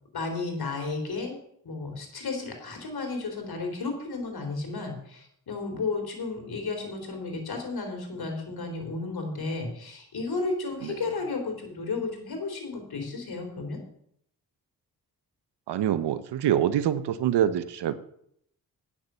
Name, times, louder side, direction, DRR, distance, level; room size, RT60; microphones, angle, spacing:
voice 1, 0.1-1.3 1.6-13.8, left 3 dB, 65° left, 3 dB, 3.8 m, -33 dB
voice 2, 15.7-17.9, right 10 dB, 85° right, 13 dB, 0.9 m, -25 dB
9.9 x 7.3 x 6.8 m, 0.70 s
supercardioid pair, 45°, 40 cm